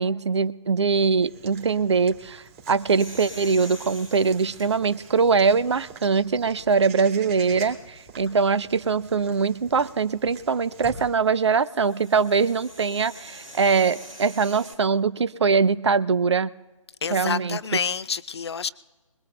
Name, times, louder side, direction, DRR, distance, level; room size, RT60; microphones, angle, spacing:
voice 1, 0.0-16.5 17.1-17.6, right 5 dB, 55° right, 0.5 m, -22 dB
Walk footsteps / Bird vocalization bird call bird song, 1.2-11.2, right 5 dB, 20° right, 2.6 m, -46 dB
sound 1, 3.0-5.9 6.5-6.6 7.4-7.7 9.8-14.7, equal, 90° right, 5.2 m, -45 dB
voice 2, 17.0-18.7, left 6 dB, 50° left, 0.5 m, -28 dB
25.5 x 21.0 x 2.3 m
figure-of-eight pair, 145°, 18 cm